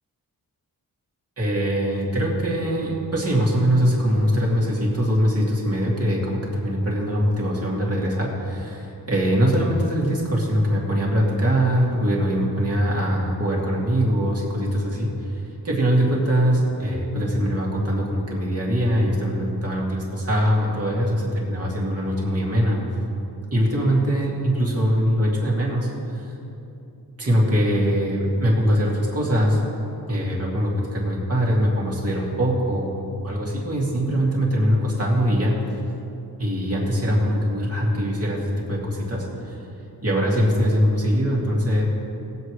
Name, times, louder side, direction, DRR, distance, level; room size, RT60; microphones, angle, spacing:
voice 1, 1.4-22.8 23.5-26.3 27.2-29.6 30.1-35.6 36.4-39.6 40.0-41.8, equal, 40° right, -4 dB, 2.5 m, -22 dB
19.0 x 7.9 x 3.3 m, 2.8 s
wide cardioid pair, 135°, 37 cm